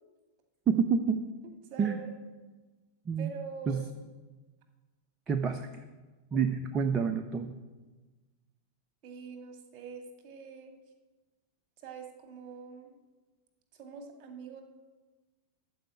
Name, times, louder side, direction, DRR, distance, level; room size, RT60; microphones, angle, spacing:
voice 1, 0.7-1.2 1.8-2.0 3.1-3.3 3.7-3.8 5.3-5.8 6.3-7.6, right 6 dB, 25° right, 7 dB, 0.7 m, -28 dB
voice 2, 1.4-2.1 3.2-3.8 9.0-10.7 11.8-12.9 13.7-14.6, right 6 dB, 40° right, 4 dB, 2.0 m, -44 dB
13.0 x 4.9 x 8.6 m, 1.3 s
figure-of-eight pair, 90°, 0 cm